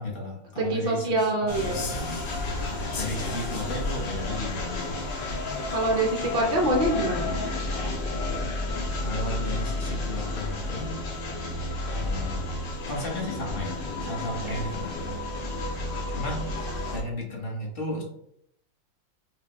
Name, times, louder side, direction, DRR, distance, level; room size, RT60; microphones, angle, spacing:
voice 1, 0.0-2.2 2.9-5.0 9.0-10.9 11.8-12.4 12.9-15.0 16.1-16.5 16.9-18.0, left 1 dB, 40° left, -2 dB, 1.0 m, -34 dB
voice 2, 0.6-1.9 5.7-7.3 14.4-14.6, right 1 dB, 85° right, 0 dB, 0.5 m, -25 dB
sound 1, 1.5-17.0, left 2 dB, 75° left, 1.5 m, -31 dB
5.9 x 2.2 x 3.0 m, 0.72 s
omnidirectional pair, 2.0 m